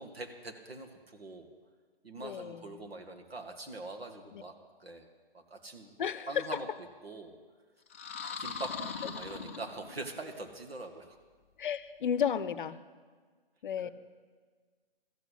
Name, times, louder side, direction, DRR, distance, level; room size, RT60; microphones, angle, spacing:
voice 1, 0.0-1.5 2.0-4.5 4.8-5.1 5.3-5.9 6.3-6.7 7.0-7.4 8.4-11.2 13.8-13.9, right 2 dB, 80° right, 5 dB, 2.0 m, -43 dB
voice 2, 2.2-2.7 4.3-4.4 6.0-6.4 11.6-12.8 13.6-13.9, left 8 dB, 55° left, 16 dB, 0.7 m, -33 dB
sound 1, 7.9-10.2, left 6 dB, 15° left, 0.4 m, -40 dB
13.5 x 8.1 x 8.4 m, 1.5 s
hypercardioid pair, 145°, 30 cm